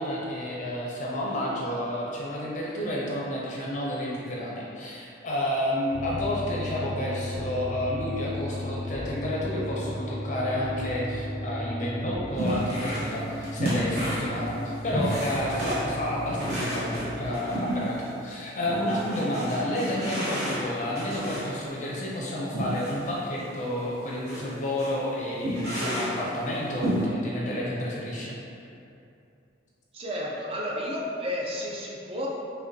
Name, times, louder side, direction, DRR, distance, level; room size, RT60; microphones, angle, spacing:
voice 1, 0.0-28.4, left 1 dB, 40° left, -5 dB, 0.5 m, -30 dB
sound 1, 5.9-17.4, left 1 dB, 90° left, 0.5 m, -35 dB
sound 2, 12.4-13.2 13.4-18.1 18.7-21.6 22.5-23.0 23.4-23.5 24.3-24.5 24.8-25.0 25.4-26.3 26.8-27.1, equal, 55° right, 1.0 m, -31 dB
voice 2, 29.9-32.3, equal, 30° right, -3 dB, 0.5 m, -32 dB
5.1 x 2.2 x 2.7 m, 2.6 s
head